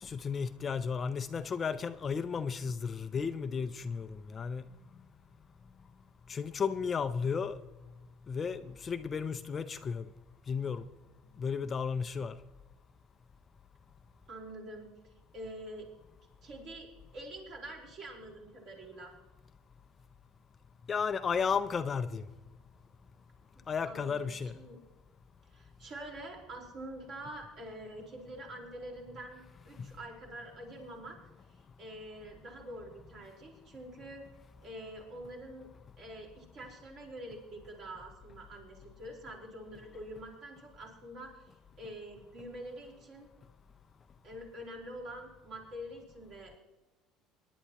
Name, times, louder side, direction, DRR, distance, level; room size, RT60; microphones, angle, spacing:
voice 1, 0.0-4.7 6.3-7.6 8.3-10.1 10.5-10.8 11.4-12.4 20.9-22.3 23.7-24.5 29.8-29.9, left 6 dB, 25° left, 10 dB, 0.4 m, -34 dB
voice 2, 14.3-15.9 16.4-16.9 17.1-19.1 23.8-24.8 25.5-31.2 31.5-34.3 34.6-35.7 36.0-43.3 44.2-46.6, right 1 dB, 45° right, -1 dB, 4.2 m, -46 dB
23.5 x 11.0 x 2.9 m, 1.1 s
cardioid pair, 155°, 0 cm